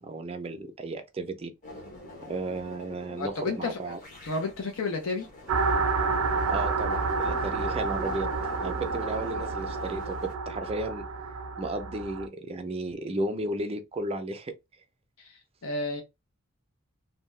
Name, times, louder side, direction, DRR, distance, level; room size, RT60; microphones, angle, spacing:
voice 1, 0.0-1.5 2.2-4.0 6.5-8.3 8.6-11.0 11.6-14.5, right 2 dB, 30° right, 0.4 m, -34 dB
sound 1, 1.6-10.3, left 1 dB, 40° left, 1.0 m, -43 dB
voice 2, 3.2-3.9 4.2-5.3 15.2-16.0, left 3 dB, 80° left, 0.6 m, -32 dB
sound 2, 5.5-12.3, right 4 dB, 90° right, 0.5 m, -29 dB
2.7 x 2.2 x 3.1 m
head